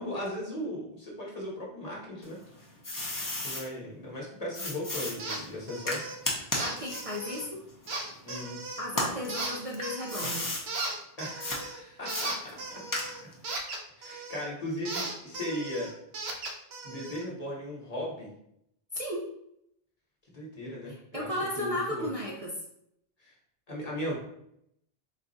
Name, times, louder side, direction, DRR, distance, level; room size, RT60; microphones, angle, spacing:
voice 1, 0.0-2.4 3.4-6.0 8.2-8.6 11.2-12.4 12.7-12.8 14.0-15.9 16.8-18.3 20.3-22.1 23.2-23.3 23.7-24.1, left 1 dB, 40° left, -4 dB, 1.2 m, -37 dB
sound 1, 2.2-3.6 4.5-8.4 8.9-10.6 11.4-11.6 12.1-13.4, left 1 dB, 25° left, 0.6 m, -34 dB
sound 2, 5.2-5.4 5.7-6.2 6.5-7.5 7.9-8.9 9.3-10.4 10.7-14.5 14.9-17.2, right 2 dB, 80° right, 1.0 m, -37 dB
voice 2, 6.5-7.6 8.8-10.5 18.9-19.3 20.9-22.5, left 1 dB, 45° right, -3 dB, 0.5 m, -34 dB
4.0 x 2.3 x 3.9 m, 0.76 s
omnidirectional pair, 1.0 m